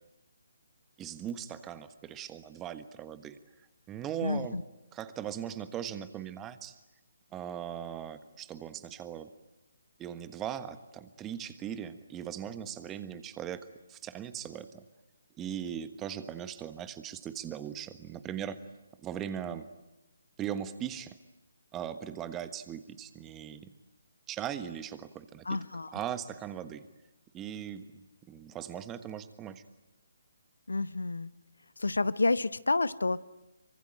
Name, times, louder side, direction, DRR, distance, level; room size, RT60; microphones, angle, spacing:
voice 1, 1.0-3.4 3.9-4.6 4.9-6.8 7.3-9.3 10.0-14.8 15.4-18.6 19.0-19.7 20.4-21.2 21.7-23.7 24.3-25.4 25.9-26.9 27.3-27.9 28.3-29.6, right 9 dB, 15° right, 12 dB, 1.4 m, -39 dB
voice 2, 4.2-4.6 25.4-25.9 30.7-31.3 31.8-33.2, left 3 dB, 70° left, 16 dB, 0.9 m, -29 dB
27.0 x 24.5 x 9.0 m, 1.0 s
figure-of-eight pair, 140°, 0 cm